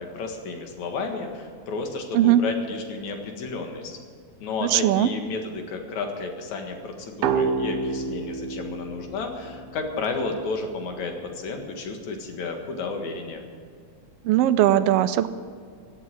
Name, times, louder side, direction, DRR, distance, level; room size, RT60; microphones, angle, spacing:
voice 1, 0.0-4.0 4.4-13.4, left 4 dB, 70° left, 4 dB, 3.0 m, -32 dB
voice 2, 4.6-5.1 14.2-15.3, right 12 dB, 80° right, 10 dB, 1.4 m, -19 dB
sound 1, 7.2-10.7, right 5 dB, 65° right, 1.8 m, -29 dB
16.0 x 8.0 x 9.7 m, 2.2 s
omnidirectional pair, 3.4 m